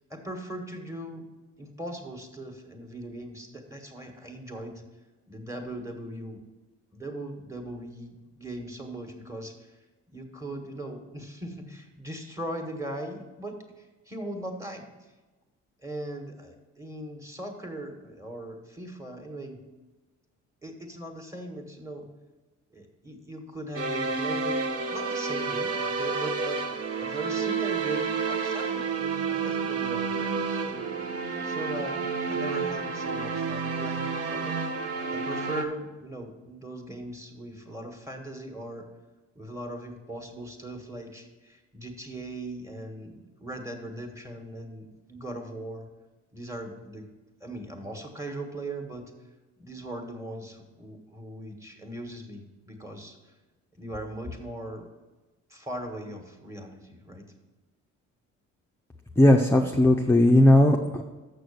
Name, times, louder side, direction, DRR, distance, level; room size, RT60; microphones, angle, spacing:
voice 1, 0.1-1.3 1.6-4.8 5.3-6.4 6.9-9.7 10.1-14.9 15.8-19.6 20.6-22.1 22.7-24.6 24.9-26.7 27.0-30.9 31.4-34.6 35.1-38.9 39.3-45.9 46.3-47.1 47.4-49.1 49.6-53.2 53.8-54.9 55.5-57.2, right 1 dB, 10° right, 3 dB, 1.5 m, -39 dB
sound 1, 23.7-35.6, right 5 dB, 55° right, 1.0 m, -30 dB
voice 2, 59.2-61.0, left 1 dB, 10° left, 2 dB, 0.6 m, -18 dB
6.8 x 6.3 x 6.7 m, 1.2 s
cardioid pair, 90°, 30 cm